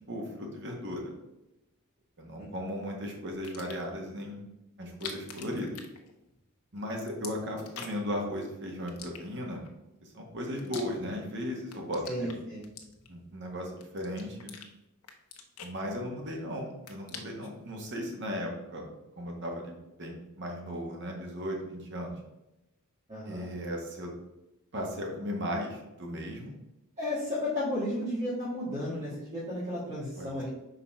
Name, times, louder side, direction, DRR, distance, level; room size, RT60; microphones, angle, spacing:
voice 1, 0.1-1.1 2.2-4.4 4.8-5.8 6.7-9.6 10.0-12.3 13.1-14.6 15.6-18.9 19.2-22.2 23.2-24.1 24.7-26.5 30.2-30.5, equal, 55° right, 0 dB, 1.5 m, -36 dB
sound 1, 3.4-4.0 4.8-6.5 6.8-8.2 8.9-9.7 10.2-11.3 11.6-13.3 13.8-14.7 15.0-16.4 16.7-17.6, left 6 dB, 85° left, 0.9 m, -46 dB
voice 2, 12.0-12.6 23.1-23.5 27.0-30.5, left 1 dB, 30° right, -10 dB, 1.9 m, -33 dB
5.3 x 4.1 x 5.6 m, 0.93 s
head